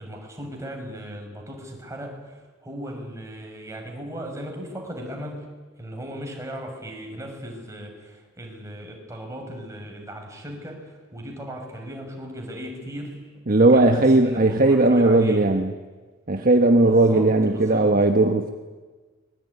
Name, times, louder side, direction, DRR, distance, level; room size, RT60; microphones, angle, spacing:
voice 1, 0.0-5.5 5.8-13.3 13.7-15.5 16.8-17.9, equal, 15° right, 2 dB, 5.9 m, -37 dB
voice 2, 13.5-15.7 16.3-18.5, right 2 dB, 45° right, 6 dB, 1.3 m, -17 dB
25.0 x 22.0 x 9.7 m, 1.4 s
head